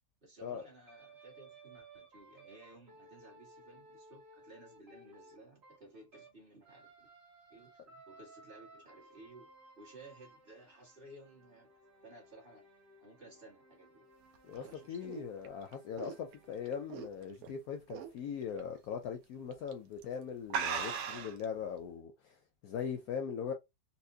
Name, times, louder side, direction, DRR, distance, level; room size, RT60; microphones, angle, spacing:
voice 1, 0.2-7.1 7.5-9.5 9.8-11.7 12.0-12.7 13.0-14.0 14.5-15.1, right 2 dB, 35° right, 1.7 m, -56 dB
sound 1, 0.9-6.4 6.6-16.9, right 2 dB, 50° right, 1.7 m, -59 dB
voice 2, 14.4-23.5, left 7 dB, 70° left, 0.9 m, -40 dB
sound 2, 14.4-17.5 17.9-18.2 18.6-18.7 19.5-19.7 20.0-20.1 20.5-21.4, right 7 dB, 70° right, 0.9 m, -38 dB
4.2 x 2.2 x 2.7 m
omnidirectional pair, 1.8 m